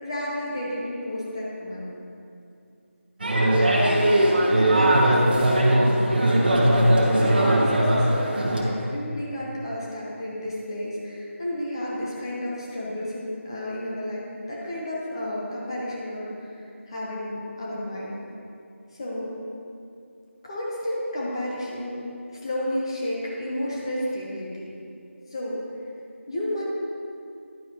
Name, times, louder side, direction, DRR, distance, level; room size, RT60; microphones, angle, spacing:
voice 1, 0.0-1.9 3.8-5.7 6.3-6.8 7.1-18.1 18.9-19.3 20.4-22.0 22.3-24.7 25.3-25.6 26.3-26.6, left 1 dB, 20° left, -5 dB, 1.0 m, -32 dB
sound 1, 3.2-8.6, right 1 dB, 45° right, 1.3 m, -19 dB
11.0 x 9.5 x 3.0 m, 2.5 s
figure-of-eight pair, 165°, 7 cm